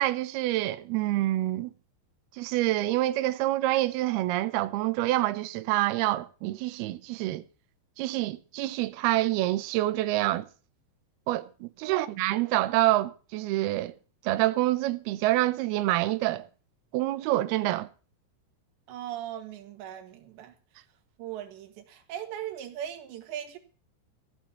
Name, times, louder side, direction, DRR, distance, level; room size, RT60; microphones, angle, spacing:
voice 1, 0.0-1.7 2.4-7.4 8.0-10.5 11.3-13.9 14.2-16.4 16.9-17.9, right 16 dB, 90° right, 2.2 m, -27 dB
voice 2, 18.9-20.5 21.2-23.6, right 11 dB, 70° right, 3.8 m, -39 dB
15.0 x 7.3 x 8.1 m
omnidirectional pair, 5.6 m